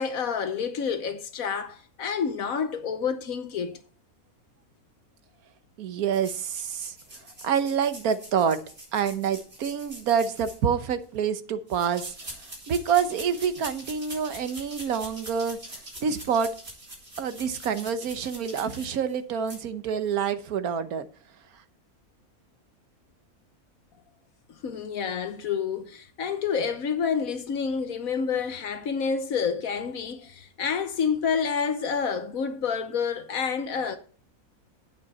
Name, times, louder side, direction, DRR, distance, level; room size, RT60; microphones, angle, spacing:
voice 1, 0.0-3.8 24.6-34.0, left 6 dB, 70° left, 1.4 m, -28 dB
voice 2, 5.8-7.0 7.4-8.6 8.9-16.5 17.2-21.1, right 7 dB, 75° right, 1.4 m, -27 dB
sound 1, 6.1-11.0 11.7-19.2 19.5-19.6, right 1 dB, 40° right, 4.7 m, -44 dB
9.9 x 9.1 x 4.2 m
omnidirectional pair, 1.6 m